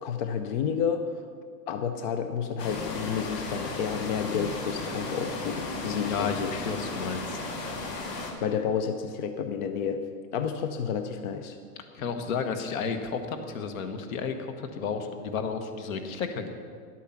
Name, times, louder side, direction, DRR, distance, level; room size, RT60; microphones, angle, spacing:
voice 1, 0.0-1.2 1.7-6.5 8.4-10.0 10.3-11.6, left 7 dB, 35° left, 7 dB, 0.4 m, -30 dB
sound 1, 2.6-8.3, left 2 dB, 90° left, 2.0 m, -35 dB
voice 2, 6.0-7.4 11.9-16.5, left 5 dB, 60° left, 7 dB, 1.3 m, -32 dB
11.0 x 8.3 x 5.7 m, 2.1 s
hypercardioid pair, 135°, 47 cm